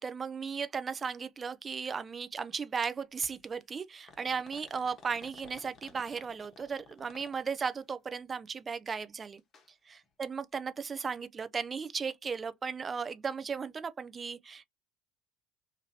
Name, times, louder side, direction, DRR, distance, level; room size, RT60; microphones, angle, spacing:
voice 1, 0.0-9.4 9.9-14.7, right 5 dB, 30° right, 0.4 m, -36 dB
sound 1, 3.2-3.4 4.1-7.8 9.4-9.7 10.0-10.1 11.0-11.1, left 4 dB, 45° left, 1.0 m, -55 dB
2.8 x 2.5 x 2.8 m
hypercardioid pair, 65°, 0 cm